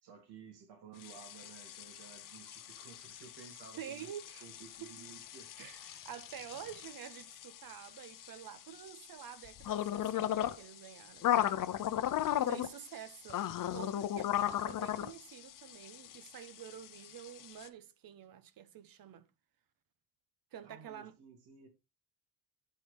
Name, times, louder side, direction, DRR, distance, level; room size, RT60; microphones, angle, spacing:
voice 1, 0.0-4.1 4.4-5.5 20.6-21.7, right 6 dB, 75° right, 3.0 m, -55 dB
sound 1, 1.0-17.7, left 11 dB, 55° left, 0.8 m, -37 dB
voice 2, 3.8-4.5 4.8-4.9 5.6-11.6 12.4-19.3 20.5-21.1, right 10 dB, 60° right, 1.2 m, -49 dB
11.5 x 4.6 x 3.6 m
cardioid pair, 120°, 40 cm